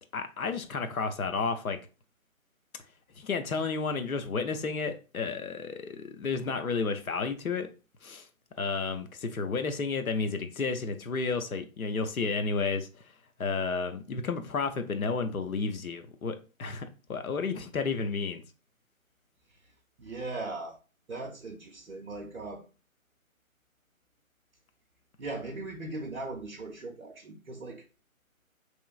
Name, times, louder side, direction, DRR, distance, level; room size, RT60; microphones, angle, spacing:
voice 1, 0.1-1.8 3.2-7.7 8.0-8.2 8.6-12.9 13.4-18.4, left 4 dB, 80° left, 0.6 m, -31 dB
voice 2, 20.0-20.7 21.1-22.6 25.2-27.8, right 2 dB, 60° right, 0.5 m, -39 dB
2.9 x 2.0 x 2.3 m
figure-of-eight pair, 155°, 42 cm